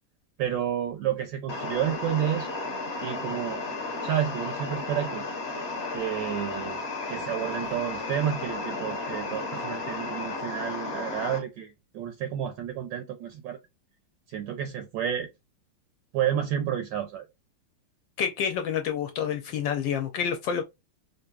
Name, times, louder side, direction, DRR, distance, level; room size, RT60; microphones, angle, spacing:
voice 1, 0.4-2.6 3.0-3.6 4.0-5.2 5.9-6.8 7.1-13.6 14.3-15.3 16.1-17.3, right 10 dB, 75° right, 1.2 m, -30 dB
sound 1, 1.5-11.4, left 3 dB, 45° left, 0.9 m, -33 dB
voice 2, 18.2-20.6, left 8 dB, 75° left, 1.2 m, -28 dB
4.5 x 2.6 x 2.3 m
omnidirectional pair, 2.2 m